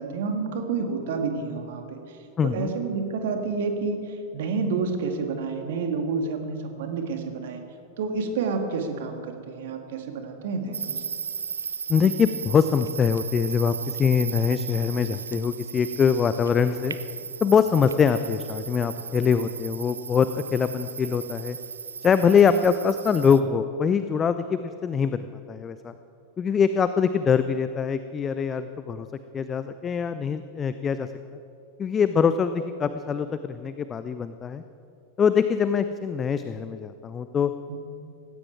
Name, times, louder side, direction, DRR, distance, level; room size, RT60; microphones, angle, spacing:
voice 1, 0.0-2.2 2.5-7.6 8.0-11.0 37.7-37.8, right 4 dB, 55° right, 4 dB, 2.1 m, -29 dB
voice 2, 2.4-2.7 11.9-16.9 17.4-21.6 22.0-25.9 26.4-29.1 29.3-31.1 31.8-34.6 35.2-37.5, left 6 dB, 20° left, 12 dB, 0.6 m, -23 dB
sound 1, 10.7-23.4, right 6 dB, 70° right, 0.6 m, -36 dB
18.5 x 16.5 x 4.7 m, 2.6 s
figure-of-eight pair, 90°, 0 cm